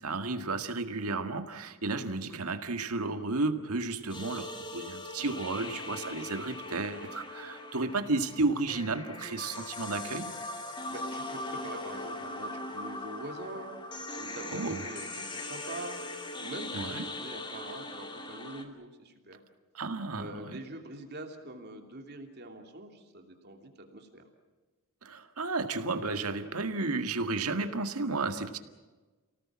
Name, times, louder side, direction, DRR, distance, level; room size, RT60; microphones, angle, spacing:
voice 1, 0.0-10.3 14.5-14.8 16.7-17.0 19.7-20.3 25.0-28.6, right 3 dB, 85° right, 7 dB, 1.9 m, -32 dB
sound 1, 4.1-18.6, left 2 dB, 20° left, 2.4 m, -40 dB
voice 2, 10.8-13.8 14.2-16.0 16.4-19.4 20.2-24.2, right 2 dB, 50° right, 4 dB, 2.9 m, -44 dB
29.5 x 18.0 x 7.5 m, 1.3 s
head